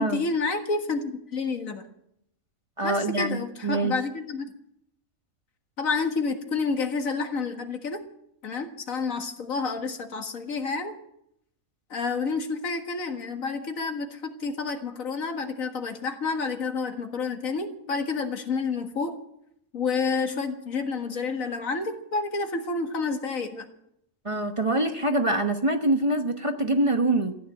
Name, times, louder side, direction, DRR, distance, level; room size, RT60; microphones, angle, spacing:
voice 1, 0.0-1.8 2.8-4.5 5.8-8.0 8.4-11.0 11.9-19.2 19.7-23.7, left 4 dB, 85° left, 6 dB, 2.1 m, -29 dB
voice 2, 2.8-3.9 24.2-27.4, right 2 dB, 25° right, 6 dB, 1.0 m, -25 dB
14.5 x 10.0 x 9.1 m, 0.75 s
omnidirectional pair, 1.4 m